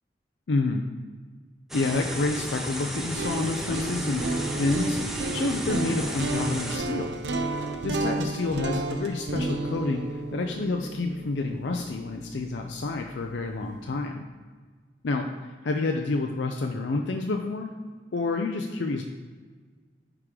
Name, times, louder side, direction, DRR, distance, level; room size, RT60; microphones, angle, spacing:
voice 1, 0.5-0.9 1.7-7.2 7.8-14.2 15.0-17.8 18.1-19.0, left 3 dB, 90° left, 3 dB, 0.5 m, -29 dB
sound 1, 1.7-6.8, equal, ahead, 0.7 m, -34 dB
sound 2, 2.9-13.0, right 2 dB, 75° right, 0.6 m, -32 dB
9.6 x 3.7 x 4.8 m, 1.5 s
head